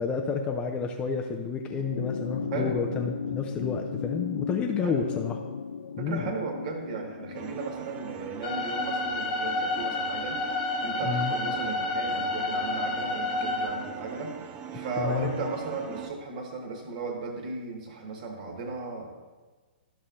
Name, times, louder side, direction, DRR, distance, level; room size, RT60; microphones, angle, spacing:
voice 1, 0.0-5.4 6.0-6.3 11.0-11.3 14.7-15.3, left 5 dB, 20° left, 3 dB, 0.5 m, -30 dB
sound 1, 1.6-10.3 11.5-11.6, left 6 dB, 75° left, 0.4 m, -37 dB
voice 2, 2.5-2.9 4.8-5.1 6.0-14.4 14.7-19.1, right 3 dB, 45° right, 2 dB, 1.7 m, -35 dB
sound 2, 7.3-16.1, right 9 dB, 25° right, 0.5 m, -41 dB
sound 3, 8.4-13.7, left 2 dB, 50° left, 1.1 m, -30 dB
12.5 x 5.5 x 2.6 m, 1.3 s
figure-of-eight pair, 120°, 6 cm